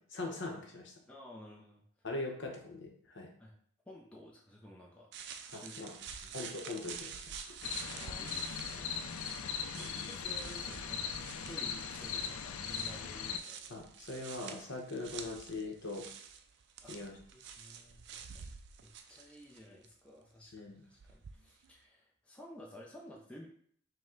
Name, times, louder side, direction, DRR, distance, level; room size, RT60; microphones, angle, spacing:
voice 1, 0.1-0.9 2.0-3.3 5.5-5.9 6.3-7.2 9.7-10.1 13.7-16.1 16.9-17.2 20.5-20.8, left 2 dB, 55° left, 1 dB, 0.8 m, -41 dB
voice 2, 1.1-1.8 3.4-3.5 3.9-5.1 5.5-6.4 7.9-13.8 16.8-18.5 18.8-23.5, left 1 dB, 5° left, -3 dB, 0.5 m, -54 dB
sound 1, 5.1-19.9 21.0-21.7, right 7 dB, 50° right, 0.3 m, -49 dB
sound 2, 7.6-13.4, left 6 dB, 75° left, 0.4 m, -39 dB
5.3 x 2.1 x 3.7 m, 0.62 s
head